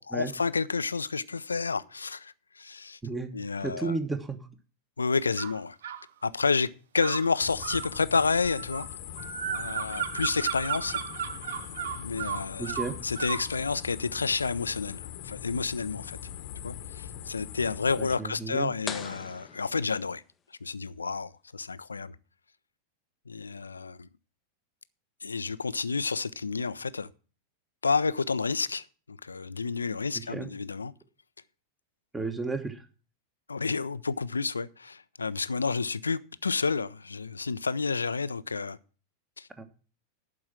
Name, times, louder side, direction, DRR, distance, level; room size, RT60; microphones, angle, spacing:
voice 1, 0.0-3.0 3.3-3.9 5.0-5.8 6.2-6.7 6.9-8.9 9.5-11.0 11.9-12.7 13.0-16.2 16.6-20.2 20.6-22.2 23.3-24.1 25.2-27.1 27.8-30.9 33.5-38.8 39.4-39.5, left 4 dB, 75° left, 0.4 m, -30 dB
voice 2, 3.6-4.4 12.6-13.0 18.0-18.7 30.3-30.5 32.1-32.9 39.6-39.7, right 3 dB, 10° right, 1.3 m, -33 dB
sound 1, 5.4-6.0 7.0-13.5, right 9 dB, 60° right, 0.6 m, -35 dB
sound 2, 7.4-18.2, left 11 dB, 50° left, 1.0 m, -42 dB
sound 3, 18.9-20.5, left 7 dB, 20° left, 0.6 m, -41 dB
11.5 x 4.8 x 7.3 m
figure-of-eight pair, 90°, 0 cm